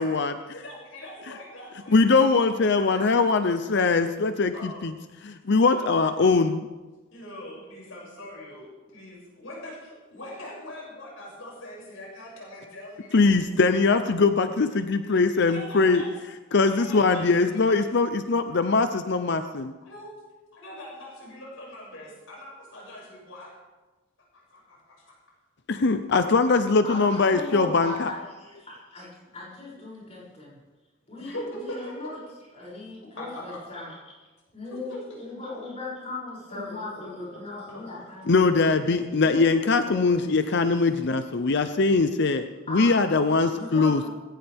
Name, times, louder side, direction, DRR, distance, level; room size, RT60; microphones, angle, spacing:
voice 1, 0.0-0.3 1.9-4.9 5.2-6.7 13.1-16.0 16.5-19.7 25.7-28.1 38.3-44.0, left 4 dB, 55° left, 9 dB, 0.6 m, -22 dB
voice 2, 0.5-2.1 2.8-3.3 4.5-4.8 5.5-6.1 7.1-13.3 15.4-16.1 16.7-17.8 19.8-20.1 20.5-23.6 24.3-25.1 31.2-32.1 33.0-33.6 34.7-35.2 36.5-37.0 37.3-37.4 37.7-37.8, left 1 dB, 80° left, -4 dB, 6.6 m, -42 dB
voice 3, 26.8-30.5 31.1-32.2 32.5-34.1 34.5-40.7 42.7-43.0 43.5-44.1, left 2 dB, 35° left, -5 dB, 6.9 m, -38 dB
19.5 x 16.5 x 3.6 m, 1.2 s
head